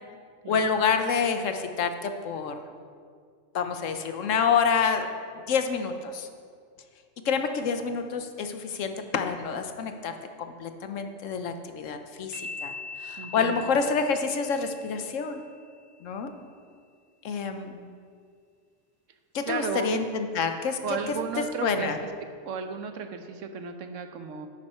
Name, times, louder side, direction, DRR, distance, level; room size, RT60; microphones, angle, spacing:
voice 1, 0.5-2.5 3.5-5.1 5.5-6.3 7.2-10.1 10.6-12.7 13.0-15.4 16.0-16.3 17.2-17.8 19.3-20.8 21.6-22.0, left 5 dB, 75° left, 7 dB, 1.1 m, -27 dB
sound 1, 12.3-15.9, left 3 dB, 15° right, 1.3 m, -42 dB
voice 2, 13.2-13.6 19.5-19.9 20.8-22.1 22.5-24.5, right 6 dB, 75° right, 7 dB, 1.1 m, -34 dB
10.5 x 9.2 x 4.3 m, 2.1 s
omnidirectional pair, 1.3 m